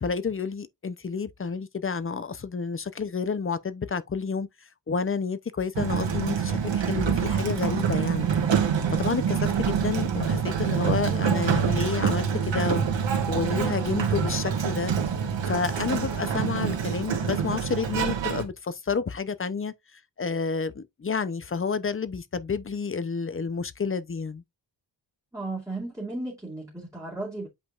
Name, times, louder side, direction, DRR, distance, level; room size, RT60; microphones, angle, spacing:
voice 1, 0.0-4.5 4.9-8.3 9.0-12.8 13.3-14.9 15.5-19.7 20.2-24.4, left 5 dB, 30° left, 0.7 m, -30 dB
Sliding door, 5.7-18.4, right 7 dB, 75° right, 2.1 m, -26 dB
voice 2, 10.9-11.7 25.3-27.5, right 2 dB, 5° right, 2.6 m, -35 dB
8.6 x 5.0 x 2.5 m
wide cardioid pair, 125°, 45 cm